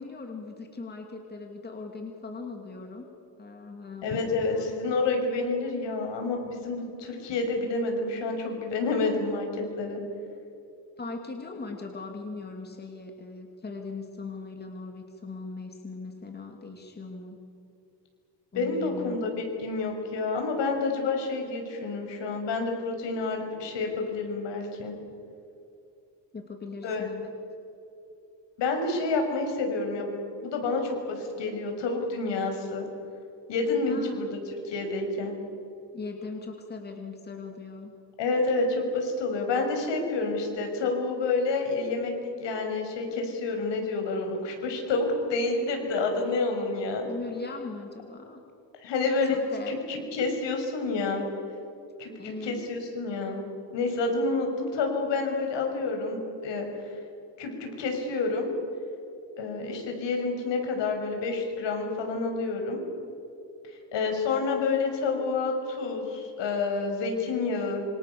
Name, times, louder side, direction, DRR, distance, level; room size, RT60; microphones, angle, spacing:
voice 1, 0.0-3.1 3.4-4.2 4.5-4.7 11.0-17.4 18.5-19.3 26.3-27.3 33.9-34.2 35.9-37.9 47.1-48.4 49.2-49.8 52.2-52.6, left 3 dB, 20° left, 3 dB, 2.7 m, -39 dB
voice 2, 4.0-10.0 18.5-24.9 26.8-27.1 28.6-30.1 30.4-32.9 33.5-34.3 34.7-35.4 38.2-47.1 48.8-49.4 49.7-51.3 52.0-53.4 53.7-56.9 57.4-58.5 59.4-62.8 63.9-67.9, left 3 dB, 70° left, 3 dB, 6.3 m, -29 dB
27.0 x 26.0 x 7.1 m, 2.7 s
cardioid pair, 135°, 44 cm